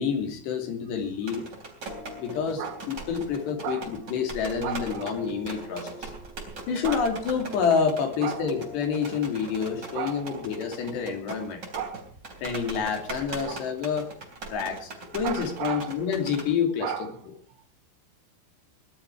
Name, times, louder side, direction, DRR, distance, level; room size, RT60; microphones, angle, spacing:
voice 1, 0.0-1.5 2.2-2.6 2.9-3.8 4.1-6.1 6.7-11.6 12.4-14.1 14.5-16.9, left 6 dB, 70° left, 5 dB, 4.8 m, -28 dB
sound 1, 1.2-16.5, right 3 dB, 25° right, 3.6 m, -41 dB
sound 2, 1.9-11.1, left 1 dB, 45° left, 5.2 m, -47 dB
voice 2, 2.6-2.9 3.6-4.1 4.6-5.4 6.8-7.1 8.2-8.5 9.9-10.5 11.7-12.1 13.4-13.7 15.1-16.0 16.8-17.7, right 8 dB, 75° right, 5 dB, 4.2 m, -35 dB
21.0 x 12.5 x 4.6 m, 0.41 s
omnidirectional pair, 5.1 m